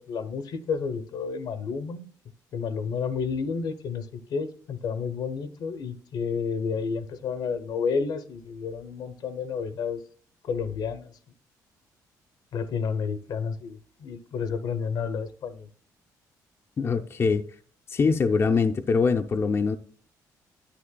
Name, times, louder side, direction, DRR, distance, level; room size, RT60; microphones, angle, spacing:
voice 1, 0.0-2.1 2.5-10.0 10.5-11.1 12.5-15.7, left 5 dB, 70° left, 0.7 m, -31 dB
voice 2, 16.8-17.4 17.9-19.8, left 5 dB, 35° left, 0.5 m, -23 dB
10.0 x 9.1 x 2.2 m
cardioid pair, 90°, 7 cm